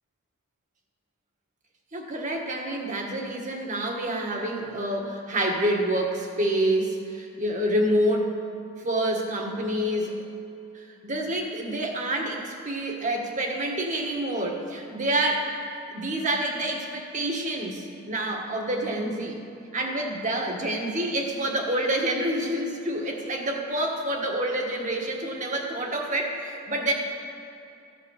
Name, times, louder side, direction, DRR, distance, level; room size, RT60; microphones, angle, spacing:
voice 1, 1.9-8.4 8.8-10.2 10.7-15.5 15.9-19.4 19.7-26.9, right 1 dB, 35° right, 1 dB, 1.6 m, -27 dB
15.0 x 8.4 x 6.4 m, 2.7 s
head